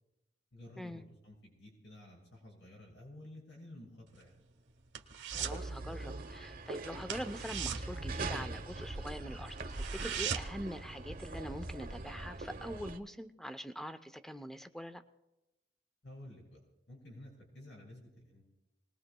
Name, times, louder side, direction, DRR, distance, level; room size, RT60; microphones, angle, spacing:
voice 1, 0.5-4.4 16.0-16.6 16.9-18.4, left 1 dB, 90° left, -2 dB, 6.3 m, -52 dB
sound 1, 4.1-5.7 5.9-6.2 6.5-6.6 7.0-8.9 9.2-9.3 9.6-10.7 11.0-11.1, right 8 dB, 90° right, 1.3 m, -39 dB
sound 2, 5.3-13.0, right 2 dB, 55° right, 0.9 m, -42 dB
voice 2, 5.4-15.0, equal, 5° left, 10 dB, 0.6 m, -44 dB
28.0 x 20.0 x 2.3 m, 0.98 s
head